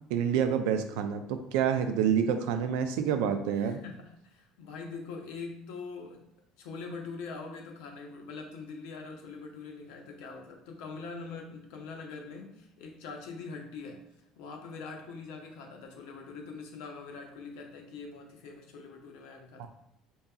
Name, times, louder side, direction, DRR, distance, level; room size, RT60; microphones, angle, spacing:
voice 1, 0.1-3.8 19.6-19.7, right 8 dB, 90° right, 7 dB, 0.4 m, -28 dB
voice 2, 3.5-6.2 6.6-14.0 14.4-19.7, left 4 dB, 85° left, 3 dB, 0.7 m, -43 dB
4.4 x 2.7 x 2.3 m, 0.77 s
cardioid pair, 125°, 0 cm